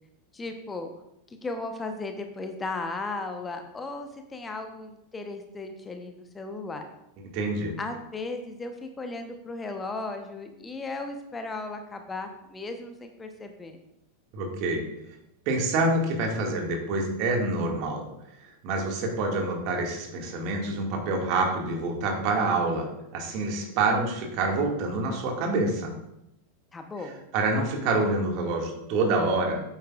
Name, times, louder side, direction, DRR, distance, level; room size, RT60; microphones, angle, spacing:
voice 1, 0.3-0.9 1.4-6.9 7.8-13.8 26.7-27.2, left 3 dB, 15° left, 6 dB, 0.9 m, -36 dB
voice 2, 7.3-7.7 14.3-14.9 15.5-18.1 18.4-25.9 27.3-29.6, right 2 dB, 45° right, 1 dB, 1.9 m, -27 dB
8.9 x 8.6 x 2.4 m, 0.83 s
figure-of-eight pair, 90°, 0 cm